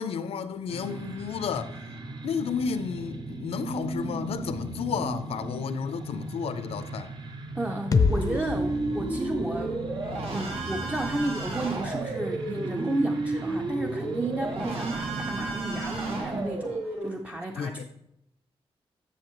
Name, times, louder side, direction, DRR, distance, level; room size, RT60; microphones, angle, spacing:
voice 1, 0.0-1.7 2.2-7.1 14.6-14.7 17.5-17.8, left 6 dB, 90° left, 0.6 m, -32 dB
sound 1, 0.7-16.4, right 2 dB, 50° right, 1.0 m, -37 dB
voice 2, 7.6-9.8 10.3-17.8, right 2 dB, 15° right, 0.5 m, -32 dB
sound 2, 7.9-11.8, left 4 dB, 35° left, 0.5 m, -30 dB
sound 3, 7.9-17.1, right 2 dB, 80° right, 2.0 m, -33 dB
12.5 x 6.4 x 3.1 m
wide cardioid pair, 145°, 10 cm